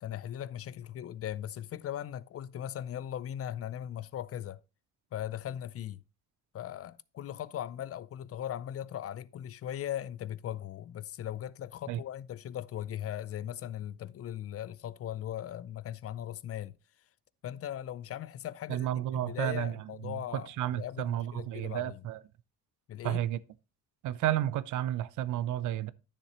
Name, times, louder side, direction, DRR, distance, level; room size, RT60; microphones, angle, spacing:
voice 1, 0.0-4.6 5.1-6.0 6.5-16.8 17.4-22.0 22.9-23.2, left 11 dB, 50° left, 0.5 m, -39 dB
voice 2, 18.7-19.7 20.0-22.2 23.0-23.4 24.0-25.9, right 12 dB, 80° right, 0.6 m, -32 dB
10.0 x 6.7 x 3.0 m
cardioid pair, 90°, 30 cm